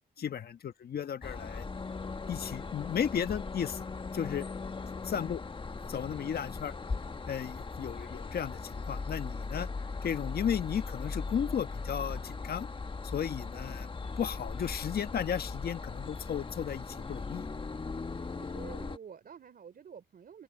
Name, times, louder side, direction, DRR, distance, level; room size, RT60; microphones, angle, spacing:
voice 1, 0.2-1.7 2.3-3.8 4.1-4.4 5.0-5.4 5.9-6.7 7.3-9.7 10.0-12.7 13.0-13.9 14.2-17.5, left 8 dB, 50° left, 1.4 m, -34 dB
sound 1, 1.2-19.0, left 4 dB, 25° left, 1.3 m, -39 dB
voice 2, 16.8-17.1 18.3-20.4, right 7 dB, 50° right, 3.5 m, -50 dB
open air
cardioid pair, 90°, 20 cm